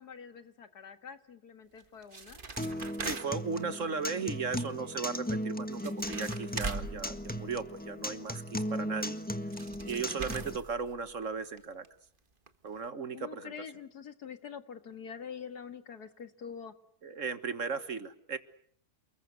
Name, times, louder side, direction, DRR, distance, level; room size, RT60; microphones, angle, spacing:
voice 1, 0.0-2.4 13.1-16.7, left 7 dB, 80° left, 9 dB, 2.4 m, -46 dB
sound 1, 1.8-3.6 5.4-5.5 5.7-7.9 9.2-9.3 9.5-11.2 11.6-11.7 11.9-12.0 12.5-12.6 12.8-12.9, right 3 dB, 35° right, 1.7 m, -41 dB
Acoustic guitar, 2.6-10.6, equal, 5° left, 1.4 m, -37 dB
voice 2, 3.0-9.2 9.9-11.9 12.6-13.5 17.0-18.4, right 5 dB, 55° right, 12 dB, 1.8 m, -36 dB
29.5 x 21.5 x 8.2 m, 0.62 s
omnidirectional pair, 1.7 m